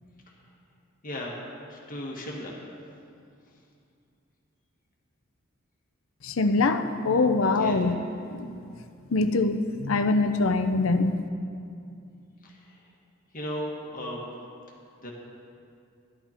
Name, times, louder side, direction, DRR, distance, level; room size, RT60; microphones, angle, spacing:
voice 1, 1.0-1.3 1.7-2.5 7.6-7.8 12.4-12.8 13.3-14.2 15.0-15.1, left 1 dB, 45° left, -2 dB, 1.8 m, -36 dB
voice 2, 6.2-8.0 8.3-8.5 9.1-11.1, left 3 dB, 80° left, 9 dB, 0.6 m, -23 dB
13.0 x 11.5 x 4.4 m, 2.5 s
head